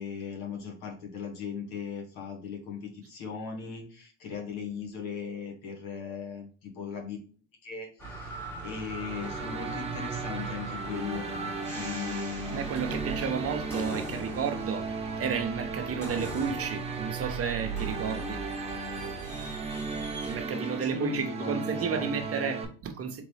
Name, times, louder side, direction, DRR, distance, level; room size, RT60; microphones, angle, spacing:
voice 1, 0.0-7.2 7.6-11.3 11.7-12.7 19.9-20.0 20.3-22.2, left 6 dB, 65° left, 1.9 m, -38 dB
sound 1, 8.0-20.4, right 3 dB, 5° left, 1.4 m, -40 dB
sound 2, 9.0-22.6, right 4 dB, 15° right, 1.1 m, -36 dB
voice 2, 12.5-18.4 20.3-23.2, right 6 dB, 35° right, 0.8 m, -32 dB
3.8 x 3.6 x 3.2 m
supercardioid pair, 90°, 38 cm